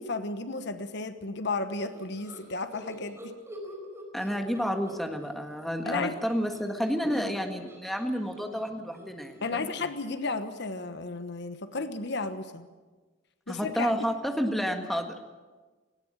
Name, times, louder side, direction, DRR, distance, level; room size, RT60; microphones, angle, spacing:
voice 1, 0.0-3.3 5.8-6.2 9.4-12.7 13.5-14.1, left 3 dB, 60° left, 10 dB, 1.2 m, -33 dB
sound 1, 1.9-5.3 5.6-10.1, equal, 15° right, 4.6 m, -48 dB
voice 2, 4.1-9.7 13.5-15.2, equal, ahead, 4 dB, 1.7 m, -30 dB
19.0 x 17.5 x 8.9 m, 1.3 s
head